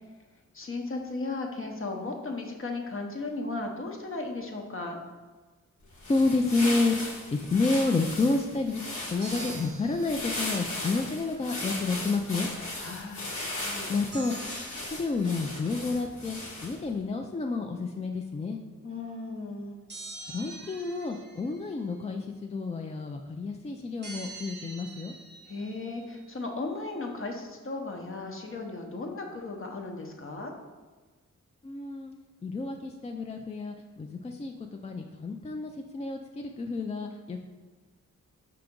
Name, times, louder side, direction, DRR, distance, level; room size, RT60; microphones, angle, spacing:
voice 1, 0.5-5.0 12.8-13.4 13.6-13.9 18.8-19.8 25.4-30.5, left 3 dB, 40° left, 2 dB, 0.8 m, -36 dB
sound 1, 5.9-16.9, left 2 dB, 65° left, 1.3 m, -37 dB
voice 2, 6.0-12.5 13.9-14.3 14.9-18.6 20.3-25.1 31.6-32.1 32.4-37.4, left 3 dB, 20° left, 3 dB, 0.3 m, -30 dB
sound 2, 9.2-10.9 14.1-15.6 19.9-21.8 24.0-26.2, right 3 dB, 35° right, 0.7 m, -46 dB
4.9 x 2.9 x 3.6 m, 1.4 s
cardioid pair, 50°, 32 cm